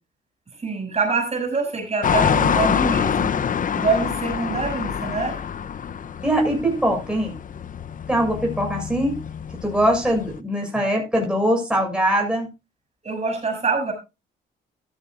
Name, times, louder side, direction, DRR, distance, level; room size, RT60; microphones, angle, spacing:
voice 1, 0.6-3.3 3.7-5.4 13.0-13.9, right 4 dB, 35° right, 3 dB, 6.3 m, -25 dB
sound 1, 2.0-10.4, left 7 dB, 40° left, 0.7 m, -26 dB
voice 2, 6.2-7.3 8.1-9.2 9.6-12.5, equal, 5° right, 1 dB, 6.9 m, -22 dB
14.5 x 13.5 x 2.5 m, 0.27 s
cardioid pair, 90°, 20 cm